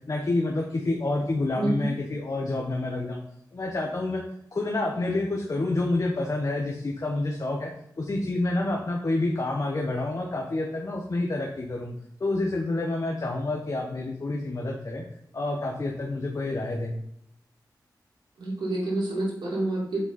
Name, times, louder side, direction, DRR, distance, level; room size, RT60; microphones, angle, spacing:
voice 1, 0.1-3.2 3.5-4.2 4.5-7.7 8.0-11.9 12.2-15.0 15.3-16.9, left 2 dB, 50° left, 0 dB, 1.2 m, -28 dB
voice 2, 1.6-1.9 18.4-20.0, right 2 dB, 85° right, -5 dB, 3.0 m, -28 dB
7.1 x 5.5 x 4.2 m, 0.74 s
cardioid pair, 60°, 7 cm